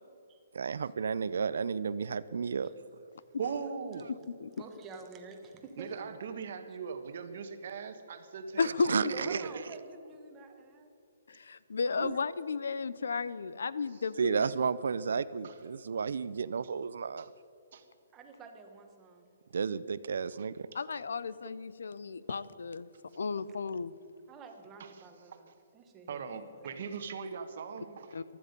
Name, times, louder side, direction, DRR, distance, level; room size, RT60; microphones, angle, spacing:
voice 1, 0.5-2.7 8.9-9.4 12.0-12.1 14.2-17.3 19.5-20.7, right 5 dB, 75° right, 15 dB, 0.5 m, -32 dB
voice 2, 3.4-4.1 5.8-8.7 9.1-9.6 15.4-15.6 16.6-16.7 17.2-17.3 17.7-17.8 20.4-20.5 24.8-24.9 25.3-25.5 26.1-28.2, right 6 dB, 45° right, 8 dB, 1.2 m, -40 dB
voice 3, 4.4-5.9 9.1-10.9 18.1-19.3 22.3-22.4 24.3-26.2 26.6-26.7, right 4 dB, 15° right, 4 dB, 1.2 m, -49 dB
voice 4, 8.6-9.1 11.3-14.5 20.7-22.9 23.1-23.9 28.1-28.2, left 4 dB, 90° left, 17 dB, 0.6 m, -33 dB
15.5 x 12.5 x 5.3 m, 2.6 s
hypercardioid pair, 175°, 0 cm